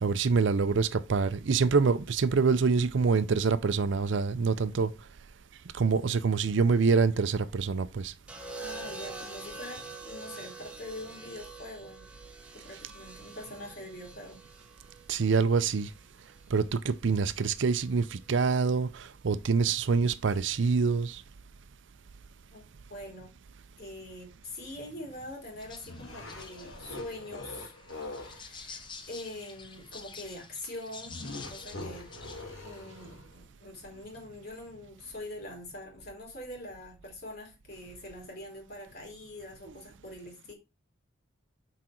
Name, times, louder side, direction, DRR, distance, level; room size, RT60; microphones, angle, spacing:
voice 1, 0.0-4.9 5.7-8.1 15.1-15.9 16.5-21.2, right 5 dB, 65° right, 0.5 m, -26 dB
sound 1, 8.3-16.4 17.7-18.0, right 3 dB, 5° right, 1.2 m, -45 dB
voice 2, 8.6-12.1 12.6-14.4 22.5-22.6 22.9-23.3 23.8-31.1 31.5-32.1 32.6-40.5, left 1 dB, 50° left, 3.3 m, -44 dB
sound 2, 25.6-32.4, left 5 dB, 25° left, 0.8 m, -49 dB
sound 3, 25.8-28.4 31.0-33.3, left 2 dB, 75° left, 2.0 m, -43 dB
6.2 x 5.0 x 4.4 m
head